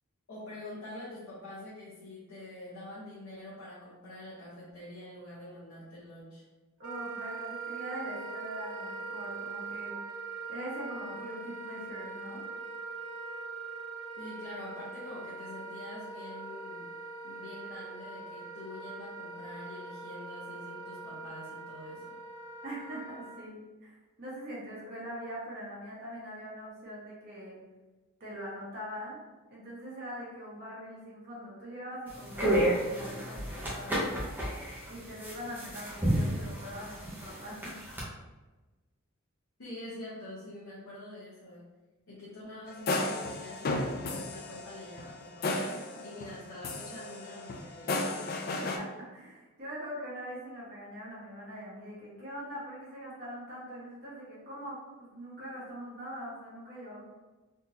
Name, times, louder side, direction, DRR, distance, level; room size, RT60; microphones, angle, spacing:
voice 1, 0.3-6.4 14.2-16.9 17.2-22.1 39.6-41.6 42.1-48.1, left 1 dB, 80° left, -9 dB, 1.0 m, -46 dB
voice 2, 6.8-10.1 10.5-12.4 22.6-27.6 28.2-29.2 29.5-34.3 34.9-37.8 45.9-46.0 48.6-57.0, equal, 45° right, -8 dB, 1.4 m, -42 dB
Wind instrument woodwind instrument, 6.8-23.4, right 4 dB, 85° right, 0.5 m, -42 dB
sound 1, 32.1-38.0, right 1 dB, 10° right, 0.7 m, -31 dB
sound 2, 42.7-46.4 46.6-48.8, left 2 dB, 45° left, 0.4 m, -34 dB
3.7 x 2.6 x 2.7 m, 1.2 s
head